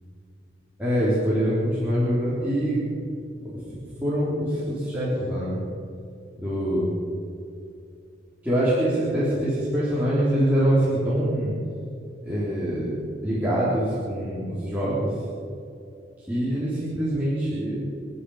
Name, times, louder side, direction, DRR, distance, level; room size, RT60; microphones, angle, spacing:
voice 1, 0.8-2.8 4.0-5.6 6.4-7.0 8.4-11.5 12.2-12.9 13.2-15.2 16.3-17.8, equal, 10° right, -11 dB, 3.8 m, -24 dB
28.0 x 10.0 x 5.0 m, 2.6 s
head